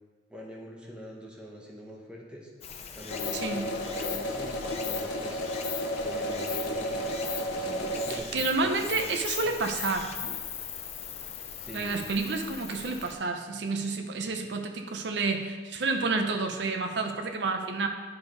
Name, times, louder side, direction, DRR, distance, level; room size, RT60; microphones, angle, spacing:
voice 1, 0.3-2.5 3.0-5.4 6.0-9.5 11.6-12.0, equal, 5° right, -2 dB, 0.9 m, -44 dB
Stream, 2.6-13.2, left 7 dB, 35° left, 0.5 m, -39 dB
sound 1, 3.1-8.2, equal, 85° left, 0.7 m, -32 dB
voice 2, 3.3-3.7 8.1-10.3 11.7-17.9, right 3 dB, 70° right, 5 dB, 0.6 m, -30 dB
10.0 x 3.5 x 3.9 m, 1.5 s
head